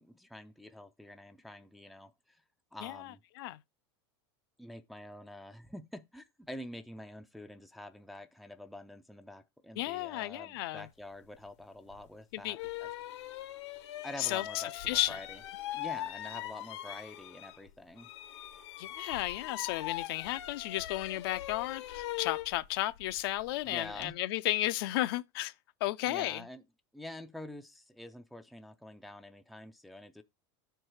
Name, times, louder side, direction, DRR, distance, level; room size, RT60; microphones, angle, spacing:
voice 1, 0.0-2.4 2.7-3.2 4.6-12.9 14.0-15.4 15.7-18.1 23.6-24.2 26.1-26.6 26.9-30.2, left 1 dB, ahead, 0.4 m, -47 dB
voice 2, 2.8-3.6 9.8-10.9 12.3-12.6 14.2-15.2 18.8-25.5 25.8-26.5, left 16 dB, 60° left, 0.5 m, -34 dB
sound 1, 11.9-12.0 12.5-17.7 18.0-24.1, left 14 dB, 80° left, 1.0 m, -41 dB
6.3 x 4.6 x 6.4 m
supercardioid pair, 165°, 14 cm